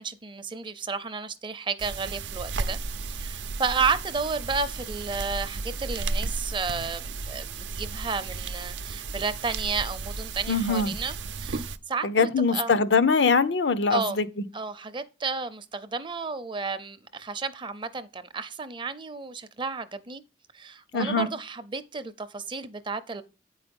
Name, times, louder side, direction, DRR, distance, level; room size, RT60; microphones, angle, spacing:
voice 1, 0.0-2.8 3.0-11.1 11.4-12.7 13.9-14.2 14.5-20.2 20.5-23.2, right 4 dB, 30° right, 0.6 m, -32 dB
sound 1, 1.8-11.8, right 3 dB, 90° right, 0.6 m, -34 dB
voice 2, 10.5-11.0 12.0-14.5 20.9-21.3, left 4 dB, 80° left, 0.7 m, -23 dB
8.9 x 4.8 x 5.2 m
head